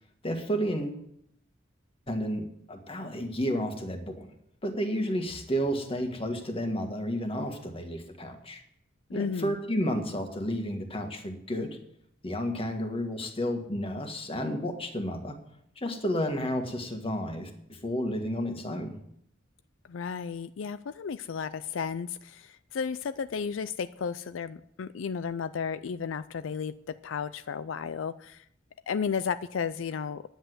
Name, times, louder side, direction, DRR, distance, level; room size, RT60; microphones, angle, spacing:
voice 1, 0.2-1.0 2.1-4.3 4.6-8.6 9.1-11.8 12.2-15.4 15.8-19.0, equal, 30° left, 4 dB, 1.7 m, -31 dB
voice 2, 9.1-9.6 19.9-28.4 28.9-30.2, left 6 dB, 80° left, 13 dB, 0.4 m, -33 dB
10.0 x 8.0 x 7.9 m, 0.72 s
head